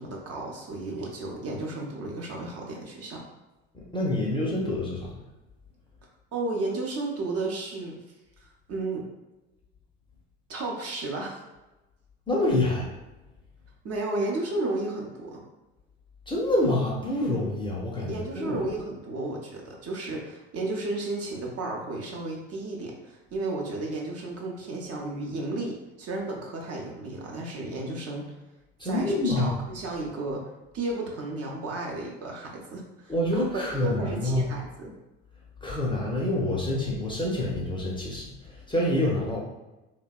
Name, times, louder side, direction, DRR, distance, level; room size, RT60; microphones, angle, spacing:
voice 1, 0.0-3.2 6.3-8.0 8.7-9.0 10.5-11.4 13.8-15.4 18.0-28.3 28.8-30.4 30.7-34.9, right 2 dB, 45° right, -1 dB, 0.7 m, -33 dB
voice 2, 3.7-5.2 12.3-12.9 16.3-18.6 28.8-29.6 33.1-34.5 35.6-39.4, left 1 dB, 15° left, -3 dB, 0.6 m, -27 dB
2.7 x 2.1 x 2.3 m, 1.0 s
hypercardioid pair, 70°, 35 cm